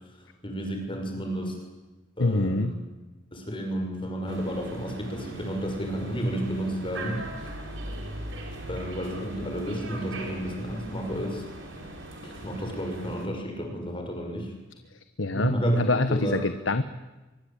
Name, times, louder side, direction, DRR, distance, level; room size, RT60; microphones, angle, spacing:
voice 1, 0.4-1.6 2.2-2.8 3.3-7.5 8.7-11.4 12.2-14.5 15.3-16.4, right 1 dB, 25° left, 2 dB, 6.1 m, -31 dB
voice 2, 2.2-2.7 15.2-16.8, left 2 dB, 75° left, 10 dB, 1.2 m, -25 dB
sound 1, 4.3-13.3, right 1 dB, 75° right, 5.6 m, -40 dB
24.0 x 24.0 x 8.9 m, 1.1 s
head